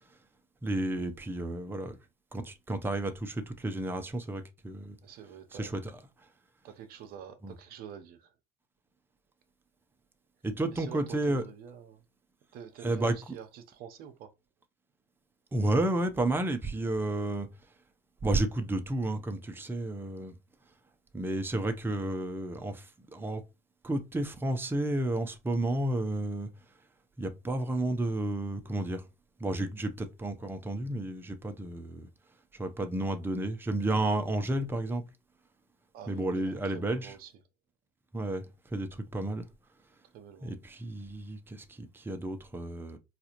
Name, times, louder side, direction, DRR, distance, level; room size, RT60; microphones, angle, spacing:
voice 1, 0.6-2.0 2.3-5.0 5.6-5.8 7.4-7.5 10.4-11.4 12.8-13.2 15.5-17.5 18.2-20.3 21.1-22.9 23.1-23.4 23.8-26.5 27.2-29.0 29.4-32.1 32.6-35.0 36.1-37.1 38.1-38.4 38.7-39.4 40.4-43.0, right 1 dB, 10° right, 0.6 m, -31 dB
voice 2, 5.0-5.7 6.6-8.3 10.7-12.0 12.5-14.3 35.9-37.3 40.1-40.5, right 8 dB, 60° right, 0.7 m, -47 dB
4.0 x 2.4 x 2.9 m
hypercardioid pair, 80°, 17 cm